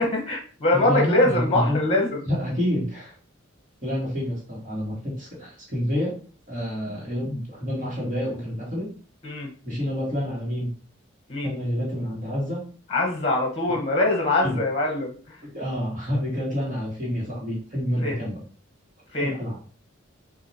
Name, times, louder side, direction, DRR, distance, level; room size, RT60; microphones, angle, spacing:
voice 1, 0.0-2.2 9.2-9.5 11.3-11.5 12.9-15.4 18.0-18.2 19.1-19.3, left 2 dB, 30° left, 1 dB, 1.3 m, -23 dB
voice 2, 0.7-1.9 2.2-3.1 3.8-6.2 6.5-8.9 9.6-10.7 11.4-12.6 14.4-14.6 15.5-18.4 19.2-19.6, equal, 40° right, -4 dB, 1.8 m, -28 dB
6.5 x 2.8 x 2.9 m, 0.41 s
head